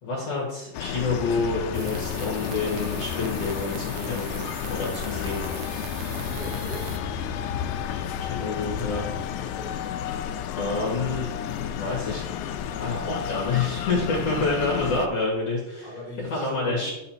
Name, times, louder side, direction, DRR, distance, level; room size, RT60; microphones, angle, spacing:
voice 1, 0.0-5.5 7.9-9.1 10.6-11.3 11.6-12.2 12.7-15.9 16.3-16.9, left 3 dB, 50° left, -5 dB, 2.6 m, -28 dB
sound 1, 0.7-15.1, left 9 dB, 85° left, 1.7 m, -31 dB
sound 2, 1.7-7.0, right 8 dB, 80° right, 2.4 m, -40 dB
voice 2, 6.0-6.9 9.3-9.8 15.8-16.9, left 1 dB, 15° left, -5 dB, 2.8 m, -40 dB
11.0 x 6.7 x 2.9 m, 0.90 s
omnidirectional pair, 4.2 m